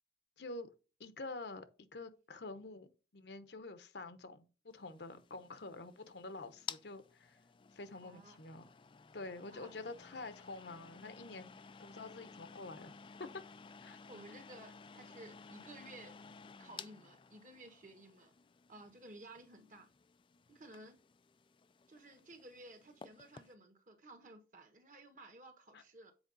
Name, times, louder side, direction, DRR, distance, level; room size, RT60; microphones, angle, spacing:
voice 1, 0.4-0.7 1.0-1.7 1.9-7.4 7.7-8.7 9.1-11.5 11.8-12.9 13.2-13.3 13.8-14.0 14.3-14.4 25.7-25.8, left 3 dB, 70° left, 0.9 m, -47 dB
sound 1, 4.8-23.5, left 6 dB, 30° left, 0.3 m, -55 dB
voice 2, 8.0-8.4 9.5-9.8 14.1-16.2 16.6-18.3 18.7-19.9 20.5-21.0 21.9-26.1, right 2 dB, 45° right, 1.4 m, -55 dB
7.9 x 4.8 x 4.0 m
head